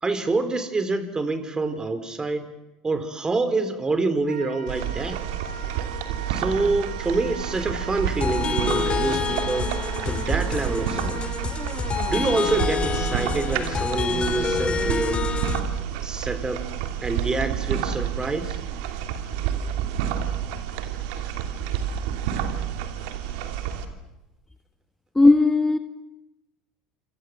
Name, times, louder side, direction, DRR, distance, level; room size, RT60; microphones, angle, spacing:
voice 1, 0.0-2.5 2.8-5.2 6.3-9.7 10.1-11.2 12.1-15.2 16.0-16.6 17.0-18.6, right 3 dB, 20° right, 4.0 m, -26 dB
Wind instrument woodwind instrument, 4.3-12.6, right 6 dB, 90° right, 2.0 m, -39 dB
sound 1, 4.7-23.9, right 9 dB, 70° right, 2.8 m, -29 dB
sound 2, 8.2-15.6, left 6 dB, 30° left, 3.1 m, -27 dB
voice 2, 25.1-25.8, left 2 dB, 10° left, 1.3 m, -16 dB
27.0 x 27.0 x 7.7 m
hypercardioid pair, 80°, 4 cm